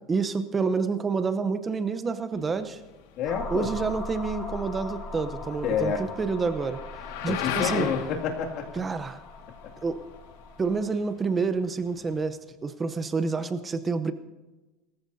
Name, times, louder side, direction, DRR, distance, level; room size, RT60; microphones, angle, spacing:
voice 1, 0.1-2.8 3.5-6.8 7.2-7.9 8.8-9.2 9.8-10.0 10.6-14.1, right 4 dB, 20° right, 11 dB, 0.8 m, -28 dB
sound 1, 2.3-12.2, left 9 dB, 85° left, 1.8 m, -39 dB
voice 2, 3.2-3.7 5.6-6.0 7.3-8.8 9.6-9.7, left 6 dB, 55° left, 1 dB, 2.3 m, -29 dB
sound 2, 3.2-10.9, left 3 dB, 35° left, 4.1 m, -40 dB
22.0 x 14.5 x 2.8 m, 1.1 s
supercardioid pair, 125°, 0 cm